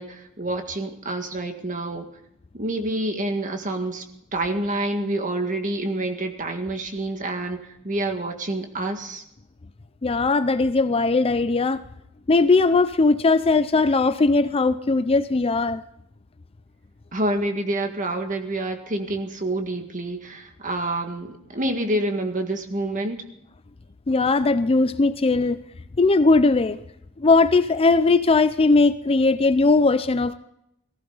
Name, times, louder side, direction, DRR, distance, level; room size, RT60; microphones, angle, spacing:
voice 1, 0.0-2.1 2.5-4.0 4.3-9.2 17.1-23.2, right 1 dB, 40° right, 5 dB, 1.8 m, -27 dB
voice 2, 10.0-11.8 12.3-15.8 24.1-25.6 26.0-26.8 27.2-30.4, left 3 dB, 30° left, 13 dB, 0.5 m, -19 dB
18.0 x 15.0 x 4.0 m, 0.78 s
head